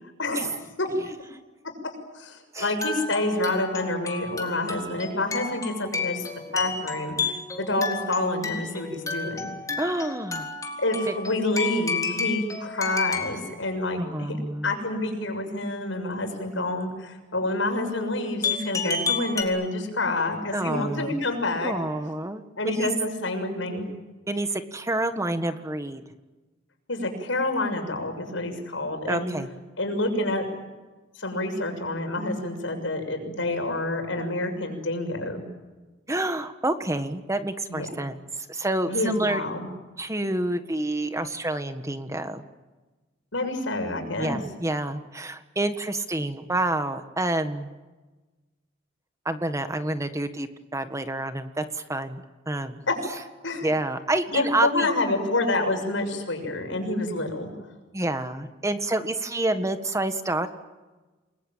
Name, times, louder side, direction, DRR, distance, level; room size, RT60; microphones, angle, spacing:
voice 1, 0.2-0.9 2.1-6.2 6.5-9.5 10.8-14.4 14.6-21.7 22.6-23.9 26.9-29.3 29.8-30.4 31.2-35.4 37.7-37.9 38.9-39.7 43.3-44.4 52.9-53.2 53.4-53.7 54.3-57.5, left 2 dB, 85° left, 5 dB, 6.7 m, -28 dB
sound 1, 2.6-13.5 18.4-19.4, left 5 dB, 20° left, 3.8 m, -31 dB
voice 2, 9.8-10.5 11.1-11.2 14.0-14.7 20.5-21.2 21.6-22.9 24.3-26.0 29.1-29.5 36.1-39.4 40.0-42.4 44.2-47.7 49.2-52.8 53.6-54.9 57.9-60.5, right 2 dB, 15° right, 9 dB, 1.6 m, -28 dB
29.0 x 21.5 x 9.1 m, 1.2 s
head